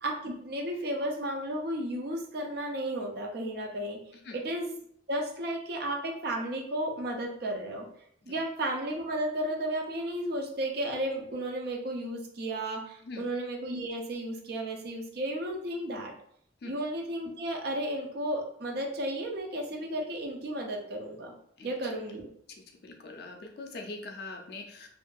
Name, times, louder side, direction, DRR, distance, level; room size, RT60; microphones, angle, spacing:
voice 1, 0.0-4.0 4.3-4.8 5.1-7.9 8.3-16.1 16.6-21.3 21.6-22.3, right 1 dB, 55° right, 2 dB, 0.4 m, -33 dB
voice 2, 22.8-24.9, left 3 dB, 55° left, 3 dB, 0.4 m, -42 dB
2.6 x 2.3 x 2.3 m, 0.67 s
head